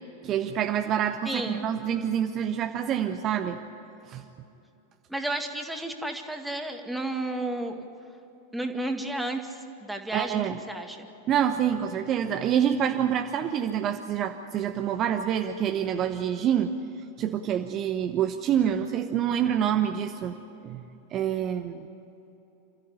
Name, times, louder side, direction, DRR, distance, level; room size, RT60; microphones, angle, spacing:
voice 1, 0.2-3.6 4.1-4.2 10.1-10.6 11.3-16.7 17.2-20.4 20.6-20.8 21.1-21.9, right 9 dB, 35° right, 6 dB, 0.9 m, -27 dB
voice 2, 1.2-1.7 5.1-7.9 8.5-11.1, right 1 dB, 5° right, 4 dB, 2.1 m, -32 dB
28.0 x 14.5 x 10.0 m, 2.9 s
figure-of-eight pair, 90°, 0 cm